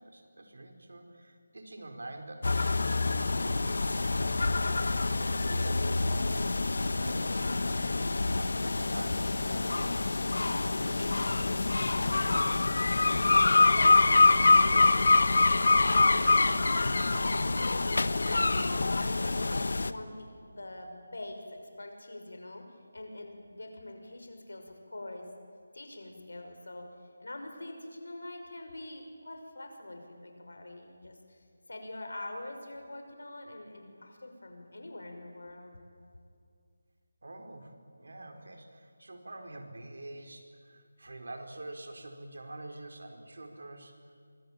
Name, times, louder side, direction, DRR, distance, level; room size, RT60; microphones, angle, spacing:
voice 1, 0.0-7.8 8.1-12.0 37.2-44.0, right 2 dB, 65° right, 4 dB, 4.8 m, -47 dB
sound 1, 2.4-19.9, left 3 dB, 55° left, 1.3 m, -26 dB
voice 2, 13.1-22.7 22.9-25.3 25.7-26.9 27.2-35.8, left 1 dB, 85° left, 4 dB, 5.9 m, -44 dB
26.0 x 24.0 x 9.2 m, 2.3 s
figure-of-eight pair, 180°, 0 cm